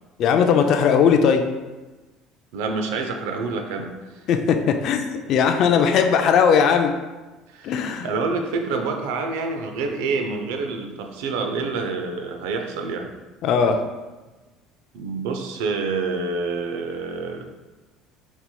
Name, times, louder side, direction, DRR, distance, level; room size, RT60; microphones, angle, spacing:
voice 1, 0.2-1.4 4.3-6.9 7.6-8.1 13.4-13.8, left 6 dB, 60° left, 5 dB, 0.3 m, -18 dB
voice 2, 2.5-4.2 7.5-7.8 8.0-13.1 14.9-17.5, right 4 dB, 85° right, 4 dB, 0.4 m, -27 dB
4.2 x 2.8 x 2.2 m, 1.2 s
supercardioid pair, 95°, 0 cm